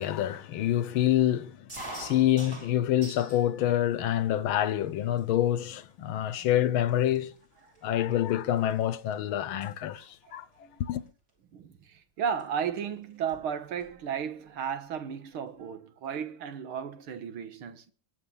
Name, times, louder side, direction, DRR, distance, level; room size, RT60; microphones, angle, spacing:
voice 1, 0.0-1.7 2.0-7.3 7.8-10.5 10.8-11.0, left 12 dB, 75° left, 1.6 m, -27 dB
sound 1, 1.7-3.4 3.9-4.5 5.2-5.3 5.5-5.9 6.6-6.7 6.9-9.1 9.4-9.7 11.1-11.3 12.4-12.5 12.7-12.8 13.1-14.0, right 1 dB, 45° right, 5.8 m, -45 dB
voice 2, 11.5-17.8, right 7 dB, 85° right, 2.2 m, -34 dB
22.0 x 8.2 x 5.4 m
omnidirectional pair, 2.3 m